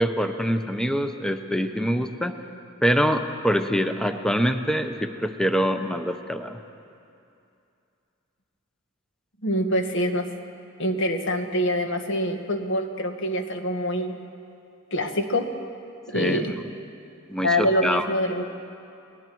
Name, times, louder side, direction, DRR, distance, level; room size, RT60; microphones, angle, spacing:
voice 1, 0.0-2.3 2.8-6.6 16.1-16.5 17.3-18.0, equal, 5° left, 7 dB, 0.7 m, -24 dB
voice 2, 9.4-10.3 10.8-14.2 14.9-15.5 16.1-16.5 17.4-18.4, equal, 65° left, 5 dB, 1.6 m, -25 dB
30.0 x 20.0 x 4.6 m, 2.6 s
head